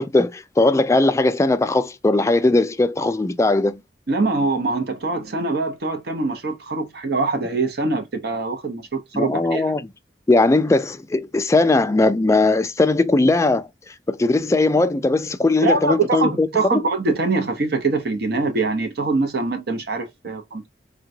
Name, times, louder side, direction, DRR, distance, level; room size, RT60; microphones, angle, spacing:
voice 1, 0.0-3.8 9.1-9.9 10.3-16.8, left 2 dB, 15° left, 0.3 m, -19 dB
voice 2, 4.1-9.6 15.6-20.7, right 3 dB, 65° right, 0.8 m, -23 dB
3.7 x 2.2 x 2.6 m
head